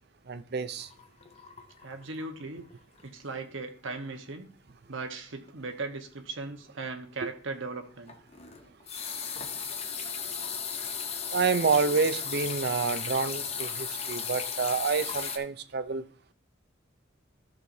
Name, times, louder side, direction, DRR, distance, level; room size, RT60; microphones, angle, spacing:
voice 1, 0.3-0.9 7.2-7.3 11.3-16.0, right 5 dB, 50° right, 0.5 m, -28 dB
sound 1, 0.8-2.4 2.7-3.0 3.4-3.5 8.1-15.4, left 6 dB, 30° left, 0.8 m, -36 dB
voice 2, 1.8-2.6 3.0-4.5 4.9-8.1, right 3 dB, 70° right, 1.2 m, -38 dB
13.5 x 6.5 x 2.7 m
head